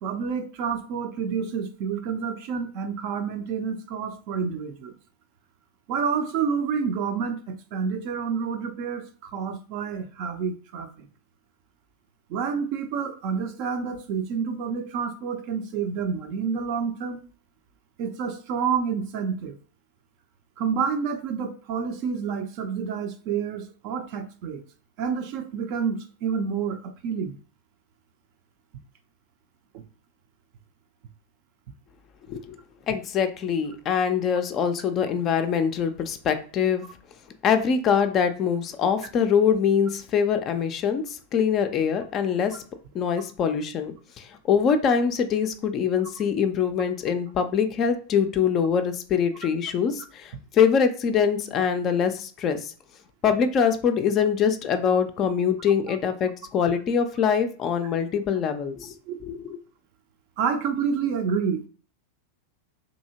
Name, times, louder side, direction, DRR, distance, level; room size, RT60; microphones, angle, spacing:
voice 1, 0.0-4.9 5.9-11.1 12.3-17.2 18.0-19.6 20.6-24.6 25.0-27.4 29.7-29.8 55.9-56.0 59.1-59.2 60.4-61.7, right 6 dB, 45° right, 7 dB, 0.4 m, -29 dB
voice 2, 32.9-36.8 37.4-42.6 42.9-52.7 53.2-59.0 59.3-59.6, left 7 dB, 30° left, 8 dB, 0.4 m, -24 dB
2.7 x 2.7 x 2.7 m, 0.39 s
figure-of-eight pair, 90°, 0 cm